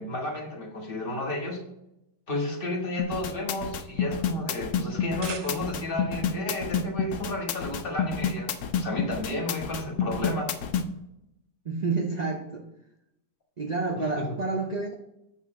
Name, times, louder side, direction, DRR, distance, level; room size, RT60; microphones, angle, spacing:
voice 1, 0.0-1.6 2.3-8.5 8.8-10.5 14.2-14.4, left 2 dB, 35° left, 0 dB, 1.6 m, -32 dB
sound 1, 3.0-10.9, left 7 dB, 65° left, 0.8 m, -29 dB
sound 2, 4.9-6.0, right 6 dB, 60° right, 0.8 m, -41 dB
voice 2, 11.6-12.7 13.6-14.9, right 3 dB, 85° right, 3 dB, 0.3 m, -29 dB
7.2 x 4.3 x 5.7 m, 0.85 s
omnidirectional pair, 1.8 m